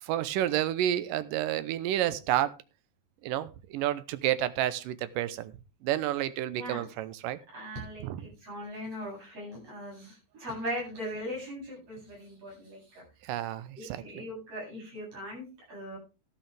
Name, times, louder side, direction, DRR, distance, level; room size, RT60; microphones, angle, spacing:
voice 1, 0.0-2.6 3.2-5.5 5.8-7.4 8.0-8.3 13.2-14.3, right 12 dB, 75° right, 14 dB, 2.4 m, -30 dB
voice 2, 6.5-6.9 7.5-13.0 13.8-16.0, equal, 45° right, -3 dB, 9.2 m, -39 dB
12.5 x 11.5 x 3.4 m, 0.29 s
omnidirectional pair, 4.1 m